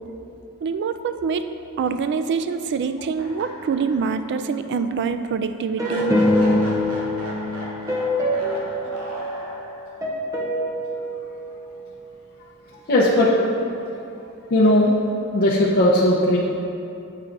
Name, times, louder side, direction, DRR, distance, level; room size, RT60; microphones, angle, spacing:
voice 1, 0.6-1.5 1.8-6.2, right 5 dB, 50° right, 10 dB, 0.3 m, -25 dB
sound 1, 3.2-4.4 4.8-4.9 5.8-10.1, equal, 75° right, 1.1 m, -36 dB
sound 2, 5.8-9.6 10.0-12.1, left 1 dB, 15° right, 0.7 m, -24 dB
voice 2, 8.1-9.2 12.9-13.4 14.5-14.9 15.3-16.4, left 1 dB, 45° left, -6 dB, 0.6 m, -19 dB
7.5 x 3.8 x 4.5 m, 2.7 s
head